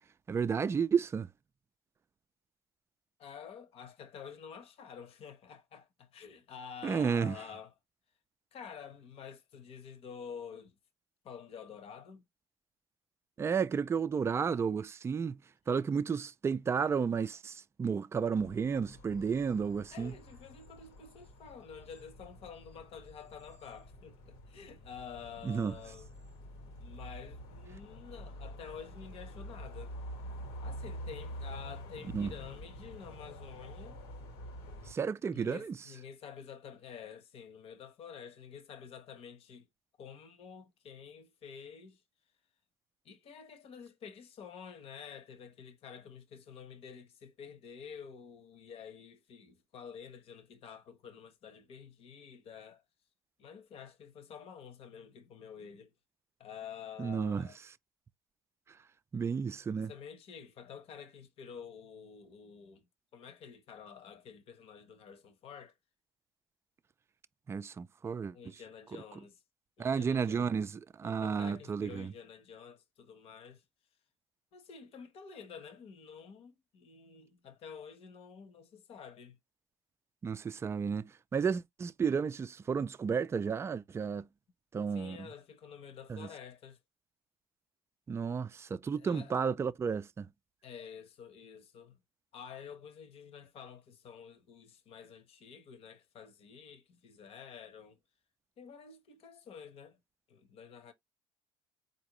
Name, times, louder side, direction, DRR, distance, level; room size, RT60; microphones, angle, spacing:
voice 1, 0.3-1.3 6.8-7.4 13.4-15.4 15.7-20.1 25.4-25.7 32.1-32.3 34.9-35.8 57.0-57.5 58.7-58.8 59.1-59.9 67.5-68.4 69.8-72.1 80.2-84.3 84.7-85.3 86.1-86.3 88.1-90.3, right 6 dB, 20° right, 0.3 m, -32 dB
voice 2, 3.2-7.7 8.5-10.8 11.2-12.2 19.9-26.1 26.8-29.9 30.6-34.0 35.3-39.7 40.0-42.0 43.0-52.8 53.4-55.9 56.4-57.6 59.8-62.8 63.1-65.7 68.3-69.4 69.8-70.5 71.0-73.6 74.5-79.4 84.9-86.8 89.0-89.3 90.6-92.0 92.3-98.0 98.6-100.0 100.3-100.9, left 7 dB, 55° left, 1.1 m, -49 dB
sound 1, 18.4-34.9, equal, 85° left, 1.6 m, -47 dB
4.2 x 2.7 x 3.0 m
supercardioid pair, 90°, 12 cm